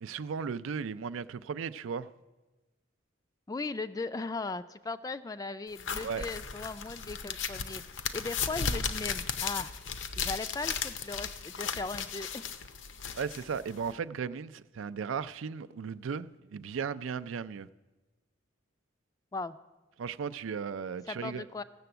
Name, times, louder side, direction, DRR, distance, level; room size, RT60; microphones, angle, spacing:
voice 1, 0.0-2.1 6.0-6.2 13.2-17.7 20.0-21.5, right 6 dB, 85° right, 0.4 m, -36 dB
voice 2, 3.5-7.8 8.1-9.7 10.2-12.4 19.3-19.6 21.1-21.6, left 3 dB, 20° left, 0.3 m, -38 dB
sound 1, 5.8-13.9, left 6 dB, 70° left, 0.7 m, -36 dB
15.0 x 6.8 x 7.9 m
head